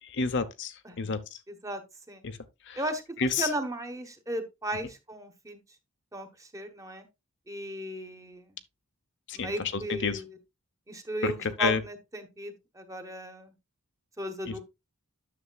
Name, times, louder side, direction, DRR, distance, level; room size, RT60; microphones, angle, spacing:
voice 1, 0.0-1.4 2.2-2.4 2.7-2.8 3.2-3.5 9.3-10.2 11.2-11.8 14.5-14.6, left 4 dB, 55° left, 0.8 m, -30 dB
voice 2, 1.5-1.8 2.1-2.2 2.7-5.6 6.1-7.1 7.5-8.5 9.3-10.4 10.9-13.5 14.2-14.6, right 1 dB, 15° right, 1.1 m, -36 dB
9.9 x 6.9 x 2.3 m
head